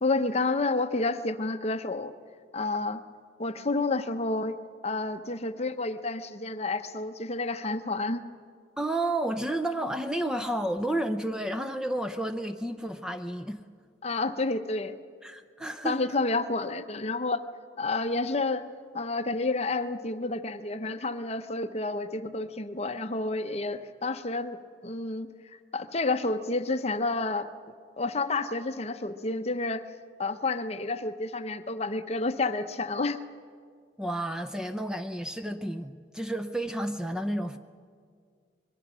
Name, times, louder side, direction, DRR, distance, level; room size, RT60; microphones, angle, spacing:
voice 1, 0.0-2.1 2.5-3.0 3.4-4.6 4.8-8.2 14.0-15.0 15.8-17.4 17.8-18.7 18.9-25.3 25.7-27.5 28.0-29.8 30.2-33.2, left 3 dB, 35° left, 10 dB, 0.8 m, -30 dB
voice 2, 8.8-13.6 15.2-16.0 34.0-37.6, right 1 dB, 5° right, 8 dB, 0.5 m, -31 dB
25.0 x 22.0 x 6.2 m, 2.1 s
head